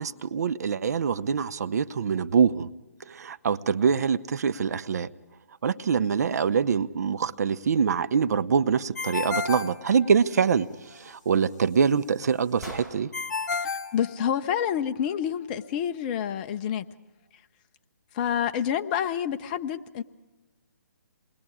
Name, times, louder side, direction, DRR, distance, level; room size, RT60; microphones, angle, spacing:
voice 1, 0.0-2.7 3.1-5.1 5.6-10.7 10.9-13.1, right 6 dB, 60° right, 0.7 m, -24 dB
Ringtone, 8.9-10.6 13.1-14.8, left 5 dB, 65° left, 1.7 m, -32 dB
sound 1, 10.2-13.3, left 1 dB, ahead, 5.4 m, -48 dB
voice 2, 13.6-16.9 18.1-20.0, left 9 dB, 30° left, 0.7 m, -28 dB
27.0 x 20.5 x 4.9 m
hypercardioid pair, 145°, 10 cm